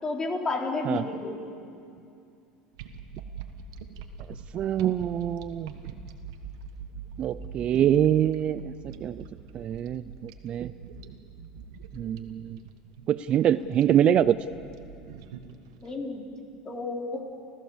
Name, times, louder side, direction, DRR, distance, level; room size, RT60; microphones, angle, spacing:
voice 1, 0.0-1.4 15.8-16.2 16.7-17.2, left 3 dB, 25° left, 1 dB, 3.9 m, -31 dB
sound 1, 2.7-15.9, right 6 dB, 85° right, 1.6 m, -43 dB
voice 2, 4.3-5.7 7.2-9.2 9.5-10.7 11.9-12.6 13.1-14.4, right 10 dB, 40° right, 16 dB, 0.5 m, -25 dB
29.5 x 15.0 x 7.3 m, 2.5 s
supercardioid pair, 115°, 3 cm